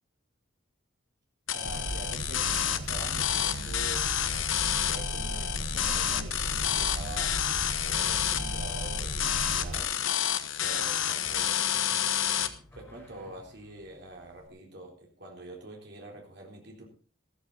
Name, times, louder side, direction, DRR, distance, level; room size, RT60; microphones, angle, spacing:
sound 1, 1.5-12.5, left 10 dB, 80° left, 1.1 m, -29 dB
voice 1, 1.5-4.5 4.9-7.4 7.8-10.0 10.5-11.7 12.3-16.9, right 2 dB, 55° right, -1 dB, 3.9 m, -45 dB
sound 2, 1.6-9.8, right 1 dB, 80° right, 1.2 m, -37 dB
sound 3, 11.2-13.9, equal, 10° left, 4.8 m, -54 dB
14.0 x 14.0 x 4.1 m, 0.37 s
head